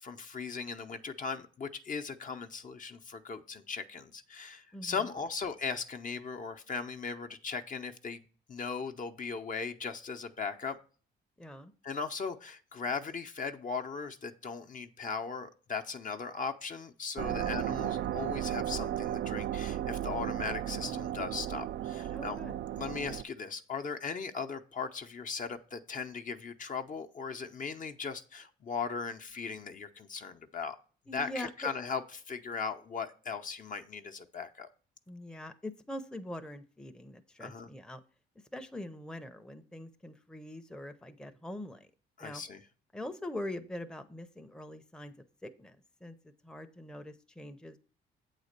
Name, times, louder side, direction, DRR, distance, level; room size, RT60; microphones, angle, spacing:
voice 1, 0.0-8.2 8.5-10.8 11.8-22.4 22.8-30.8 31.1-32.0 32.3-34.7 37.4-37.7 42.2-42.6, left 5 dB, 40° left, 7 dB, 0.8 m, -38 dB
voice 2, 11.4-11.7 17.3-17.6 22.1-22.6 31.1-31.5 35.1-38.0 38.5-41.9 42.2-42.4 42.9-45.8 46.0-47.8, left 1 dB, 5° left, 7 dB, 0.7 m, -43 dB
sound 1, 17.2-23.2, right 11 dB, 60° right, 0.4 m, -35 dB
8.2 x 4.1 x 6.6 m, 0.39 s
cardioid pair, 90°, 20 cm